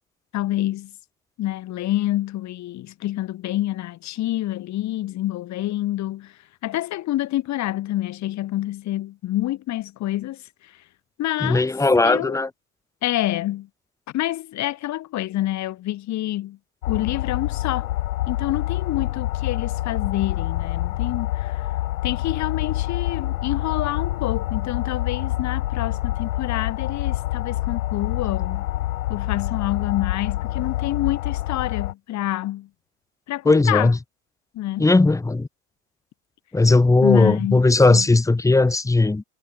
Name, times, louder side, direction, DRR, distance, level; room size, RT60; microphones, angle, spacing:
voice 1, 0.3-0.9 1.4-10.8 11.2-11.7 12.0-12.3 13.0-13.7 14.1-16.6 16.9-17.9 18.3-21.7 22.0-28.7 29.1-32.7 33.3-33.9 34.5-34.9 37.0-38.1, left 15 dB, 35° left, 6.7 m, -27 dB
voice 2, 11.4-12.5 33.5-34.0 34.8-35.5 36.5-39.2, left 2 dB, 5° left, 1.9 m, -17 dB
sound 1, 16.8-31.9, left 15 dB, 65° left, 2.0 m, -26 dB
hypercardioid pair, 95°, 46 cm